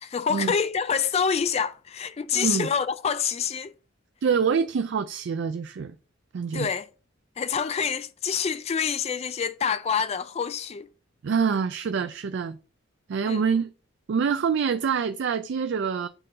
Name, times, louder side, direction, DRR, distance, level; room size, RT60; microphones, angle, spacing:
voice 1, 0.0-3.7 6.5-6.8 7.4-10.9 13.2-13.4, left 6 dB, 30° left, 0.3 m, -27 dB
voice 2, 2.3-2.7 4.2-5.9 6.3-6.7 11.2-12.6 13.1-13.7 14.1-16.1, right 6 dB, 55° right, 0.4 m, -26 dB
9.0 x 3.8 x 3.9 m
head